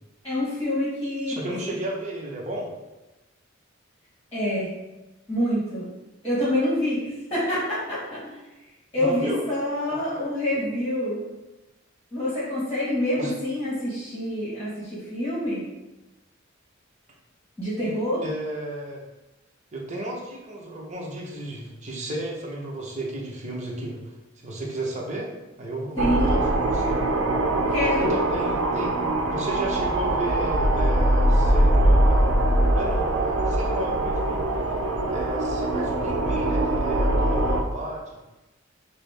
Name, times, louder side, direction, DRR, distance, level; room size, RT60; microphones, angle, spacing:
voice 1, 0.2-1.4 1.7-1.8 4.3-4.7 5.3-5.9 6.2-8.4 8.9-11.2 12.1-15.7 17.6-18.2 26.0-26.4 27.7-28.1, left 1 dB, 10° left, -8 dB, 1.3 m, -26 dB
voice 2, 1.3-2.7 9.0-9.4 10.0-10.2 13.2-13.3 18.2-19.0 19.7-24.1 24.4-25.3 25.6-27.1 28.0-28.9 29.2-32.3 32.7-34.4 35.1-38.2, right 1 dB, 35° right, -3 dB, 0.8 m, -33 dB
sound 1, 26.0-37.6, right 1 dB, 90° right, 0.5 m, -22 dB
5.9 x 2.0 x 3.3 m, 1.0 s
head